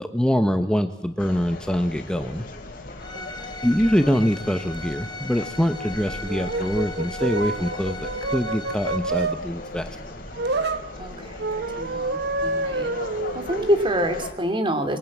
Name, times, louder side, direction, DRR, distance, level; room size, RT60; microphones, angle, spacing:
voice 1, 0.0-2.5 3.6-9.9, equal, 5° left, 7 dB, 1.0 m, -24 dB
sound 1, 1.2-14.3, left 2 dB, 50° left, 4.0 m, -38 dB
Bowed string instrument, 3.0-9.0, left 2 dB, 25° left, 2.8 m, -38 dB
sound 2, 5.8-9.4 10.3-10.9 11.4-13.9, right 3 dB, 60° right, 1.3 m, -28 dB
voice 2, 11.0-11.4 11.8-12.9 13.3-15.0, equal, 25° right, 8 dB, 2.7 m, -26 dB
27.5 x 23.5 x 7.3 m, 1.1 s
head